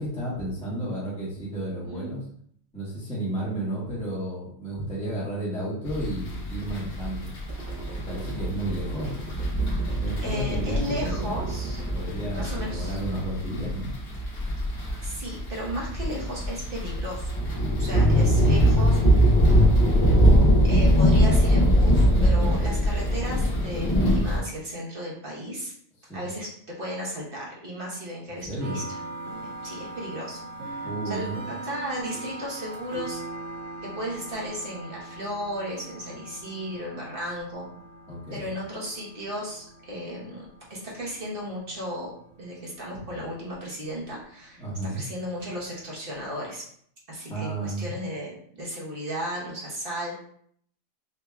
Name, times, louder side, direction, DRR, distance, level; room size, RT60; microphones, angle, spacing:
voice 1, 0.0-2.2 2.7-7.3 7.9-9.1 10.0-11.4 11.9-13.9 17.9-18.3 26.1-26.2 28.4-28.8 30.8-31.4 38.1-38.5 44.6-45.0 47.3-47.9, right 1 dB, 5° left, -8 dB, 1.2 m, -32 dB
sound 1, 5.9-24.4, equal, 50° left, 1.3 m, -22 dB
sound 2, 7.5-13.1, right 1 dB, 25° right, 0.9 m, -38 dB
voice 2, 10.2-11.8 12.3-13.0 15.0-17.3 17.8-19.2 20.6-25.7 26.1-26.5 26.8-29.0 29.6-31.3 31.6-33.2 33.8-37.7 38.3-46.6 47.1-50.1, equal, 45° right, -4 dB, 1.3 m, -35 dB
sound 3, 28.6-46.4, right 2 dB, 75° right, 1.3 m, -41 dB
5.4 x 2.8 x 2.3 m, 0.63 s
omnidirectional pair, 1.4 m